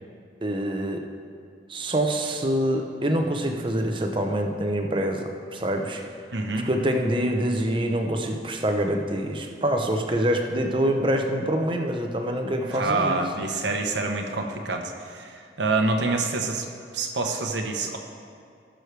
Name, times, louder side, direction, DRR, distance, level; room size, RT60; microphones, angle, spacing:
voice 1, 0.4-1.0 1.7-6.0 6.6-13.2, right 1 dB, 30° right, 3 dB, 0.8 m, -25 dB
voice 2, 6.3-6.7 12.7-18.0, right 3 dB, 85° right, 3 dB, 1.0 m, -27 dB
17.5 x 6.3 x 3.3 m, 2.3 s
head